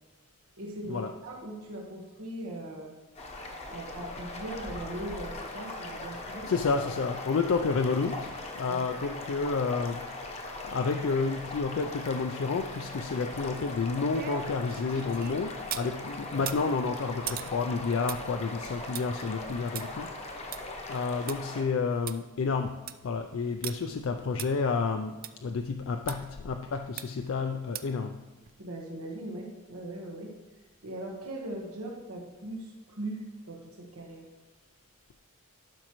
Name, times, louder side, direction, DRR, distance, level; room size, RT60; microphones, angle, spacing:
voice 1, 0.6-3.0 3.7-6.5 8.7-8.8 28.6-30.3 30.8-34.2, right 1 dB, 90° right, 0 dB, 1.3 m, -40 dB
sound 1, 3.2-21.6, left 2 dB, 30° left, 0.8 m, -40 dB
voice 2, 6.5-20.1 20.9-28.2, left 4 dB, 65° left, 5 dB, 0.4 m, -30 dB
sound 2, 13.5-15.9 16.3-21.4 21.7-21.8 22.1-22.2 22.6-23.1 23.6-23.7 24.4-24.5 25.2-25.3 26.1-26.2 27.0-27.3 27.7-28.0 28.4-28.5, right 11 dB, 40° right, 0.3 m, -41 dB
12.0 x 6.1 x 3.0 m, 1.2 s
head